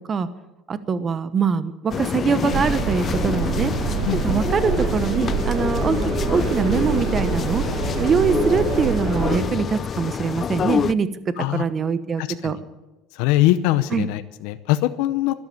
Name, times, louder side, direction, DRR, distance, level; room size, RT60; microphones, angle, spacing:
voice 1, 0.7-3.7 4.2-6.0 6.3-7.6 8.0-12.6 13.9-14.1, right 6 dB, 30° right, 13 dB, 1.1 m, -23 dB
Moscow down to the subway, 1.9-10.9, left 7 dB, 35° left, 0.4 m, -27 dB
sound 1, 2.5-9.4, right 8 dB, 70° right, 1.8 m, -27 dB
voice 2, 4.0-4.4 11.4-11.6 12.2-12.5 13.1-15.3, left 15 dB, 85° left, 12 dB, 0.7 m, -22 dB
sound 2, 4.4-9.4, left 2 dB, 15° left, 5.8 m, -28 dB
13.0 x 12.0 x 8.5 m, 1.1 s
cardioid pair, 125°, 0 cm